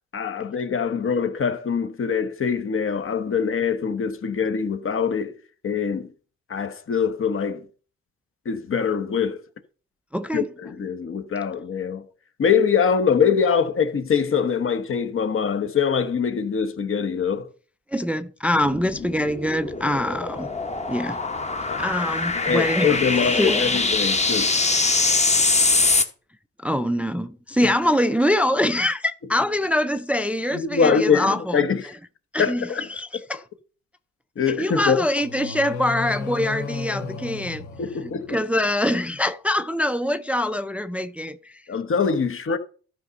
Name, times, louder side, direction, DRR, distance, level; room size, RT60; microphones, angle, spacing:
voice 1, 0.1-5.4 5.6-6.1 6.5-7.7 8.4-9.4 10.3-12.1 12.4-17.5 21.7-21.8 22.3-24.6 27.6-27.7 30.5-32.0 32.4-32.9 34.4-35.0 37.8-38.4 41.7-42.6, left 6 dB, 45° left, 1.1 m, -23 dB
voice 2, 10.1-10.5 17.9-20.5 20.9-21.2 21.8-23.7 26.6-31.6 32.3-33.4 34.5-37.7 38.3-41.6, left 1 dB, 5° right, 0.4 m, -24 dB
sound 1, 18.5-26.0, left 3 dB, 20° left, 1.1 m, -23 dB
sound 2, 35.2-38.5, left 4 dB, 85° left, 1.3 m, -33 dB
12.5 x 5.3 x 4.0 m
cardioid pair, 90°, 30 cm